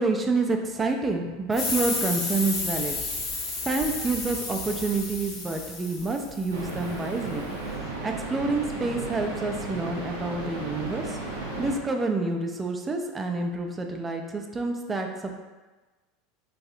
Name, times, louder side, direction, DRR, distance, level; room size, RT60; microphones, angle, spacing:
voice 1, 0.0-3.0 3.6-7.5 8.0-11.2 11.6-15.4, right 3 dB, 20° right, 3 dB, 0.4 m, -28 dB
sound 1, 1.5-6.8, left 3 dB, 40° left, 0.7 m, -32 dB
sound 2, 6.5-11.8, right 2 dB, 85° right, 0.6 m, -34 dB
3.0 x 2.7 x 2.5 m, 1.2 s
hypercardioid pair, 80°, 0 cm